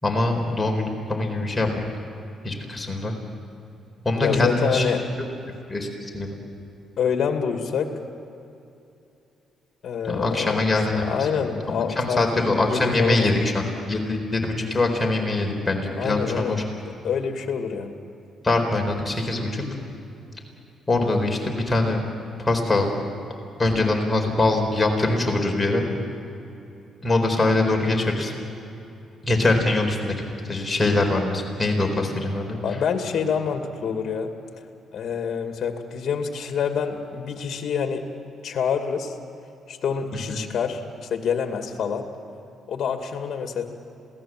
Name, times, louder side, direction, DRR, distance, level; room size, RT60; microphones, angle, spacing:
voice 1, 0.0-1.7 2.4-3.1 4.0-4.8 5.2-5.3 5.7-5.9 6.1-6.4 10.0-16.6 18.4-19.7 20.9-22.0 22.4-22.9 23.6-25.8 27.0-28.3 29.2-30.2 30.5-32.6 40.3-40.4, left 2 dB, 20° left, 2 dB, 4.2 m, -23 dB
voice 2, 4.2-5.0 7.0-7.9 9.8-10.6 10.9-13.4 16.0-16.6 17.0-18.0 32.6-34.3 34.9-38.0 38.4-39.2 39.7-42.0 42.7-43.6, left 7 dB, 60° left, 5 dB, 2.3 m, -26 dB
27.0 x 18.0 x 7.6 m, 2.8 s
cardioid pair, 90°, 0 cm